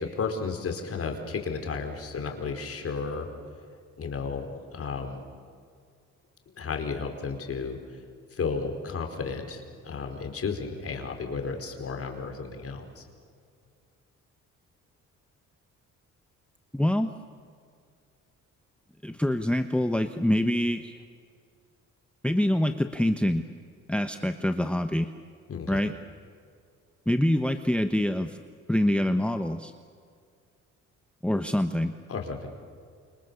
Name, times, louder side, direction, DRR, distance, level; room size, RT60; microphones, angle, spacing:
voice 1, 0.0-3.3 4.0-5.2 6.5-7.8 8.3-13.0 25.5-25.8 32.1-32.5, left 5 dB, 50° left, 4 dB, 4.7 m, -33 dB
voice 2, 16.7-17.1 19.0-20.9 22.2-23.4 23.9-25.1 25.7-25.9 27.1-28.4 28.7-29.7 31.2-31.9, left 1 dB, 5° left, 7 dB, 1.1 m, -25 dB
29.0 x 27.5 x 7.1 m, 2.2 s
cardioid pair, 90°, 30 cm